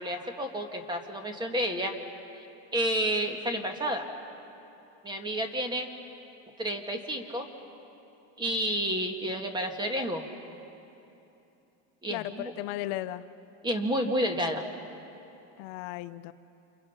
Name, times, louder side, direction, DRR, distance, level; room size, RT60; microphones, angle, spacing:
voice 1, 0.0-1.9 2.7-4.1 5.0-5.9 6.6-7.5 8.4-10.2 12.0-12.5 13.6-14.6, equal, 10° right, 5 dB, 1.6 m, -30 dB
voice 2, 12.1-13.2 15.6-16.3, left 15 dB, 70° left, 12 dB, 0.7 m, -35 dB
29.5 x 27.5 x 5.7 m, 2.9 s
cardioid pair, 160°, 39 cm